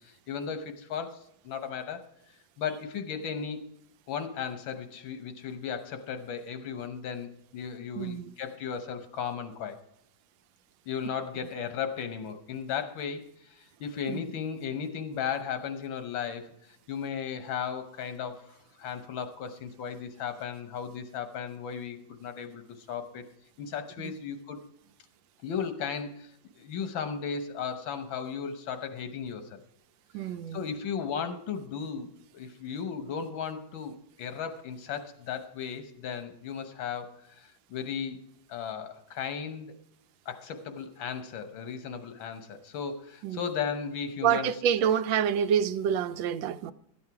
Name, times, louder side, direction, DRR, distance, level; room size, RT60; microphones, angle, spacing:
voice 1, 0.0-2.1 2.6-3.6 4.1-9.8 10.9-13.2 13.5-16.5 16.9-23.2 23.6-24.6 25.4-26.3 26.6-29.6 30.5-38.2 38.5-39.8 40.3-44.5, left 7 dB, 90° left, 1.8 m, -35 dB
voice 2, 7.9-8.3 14.1-14.2 24.0-24.1 30.1-30.7 43.2-43.5 44.2-46.7, right 8 dB, 80° right, 1.3 m, -27 dB
13.0 x 8.9 x 4.7 m
omnidirectional pair, 2.1 m